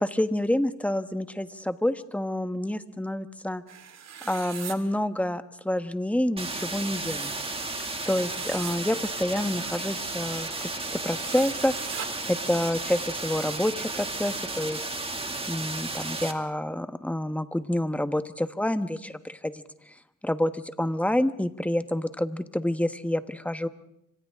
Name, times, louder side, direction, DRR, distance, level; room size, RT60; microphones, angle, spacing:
voice 1, 0.0-3.6 4.2-7.3 8.0-14.8 15.5-19.9 20.2-23.7, left 1 dB, 5° left, 9 dB, 1.3 m, -28 dB
sound 1, 3.7-4.8 6.9-8.8 11.2-12.1, right 8 dB, 60° right, 2.9 m, -41 dB
sound 2, 6.4-16.3, right 2 dB, 20° right, 2.4 m, -33 dB
29.5 x 26.0 x 3.7 m, 0.77 s
cardioid pair, 90°, 30 cm